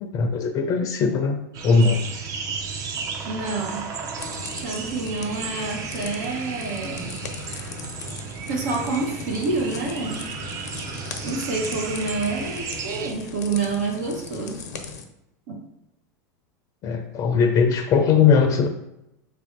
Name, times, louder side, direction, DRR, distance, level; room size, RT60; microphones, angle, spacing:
voice 1, 0.0-1.4 1.6-2.0 16.8-18.7, left 5 dB, 40° left, 5 dB, 0.5 m, -19 dB
sound 1, 1.5-13.1, right 5 dB, 40° right, 0.6 m, -34 dB
voice 2, 3.2-3.9 4.5-7.2 8.5-10.3 11.2-14.6 15.5-15.6, right 3 dB, 75° right, 0 dB, 0.8 m, -28 dB
sound 2, 4.2-15.0, left 5 dB, 90° left, 0.6 m, -38 dB
3.2 x 2.6 x 4.5 m, 0.86 s
supercardioid pair, 110°, 9 cm